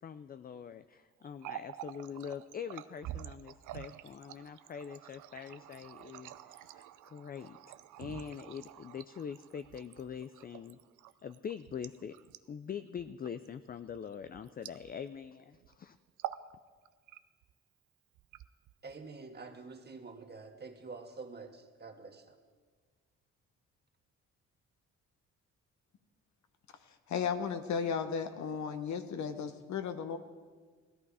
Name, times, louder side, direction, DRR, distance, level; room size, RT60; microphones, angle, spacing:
voice 1, 0.0-7.6 8.0-10.8 11.2-12.1 12.5-16.0, left 7 dB, 30° left, 0.4 m, -43 dB
Water tap faucet, 1.2-15.3 15.5-15.8 16.1-16.5 16.8-17.5 18.1-18.9, right 13 dB, 80° right, 0.6 m, -47 dB
voice 2, 18.8-22.4, right 4 dB, 35° right, 1.7 m, -47 dB
voice 3, 27.1-30.2, left 6 dB, 70° left, 1.2 m, -35 dB
17.5 x 13.5 x 4.8 m
cardioid pair, 90°, 30 cm